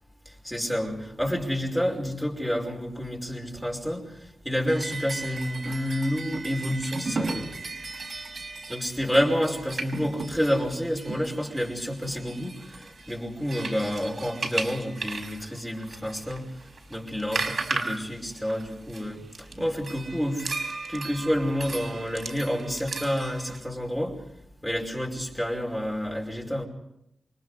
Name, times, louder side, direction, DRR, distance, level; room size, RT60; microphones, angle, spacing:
voice 1, 0.2-7.5 8.7-16.5 16.9-19.2 19.6-24.1 24.6-26.7, equal, 5° left, 0 dB, 5.2 m, -29 dB
sound 1, 4.7-23.6, right 3 dB, 45° right, 5.5 m, -36 dB
29.5 x 24.0 x 5.0 m, 0.80 s
wide cardioid pair, 130°, 0 cm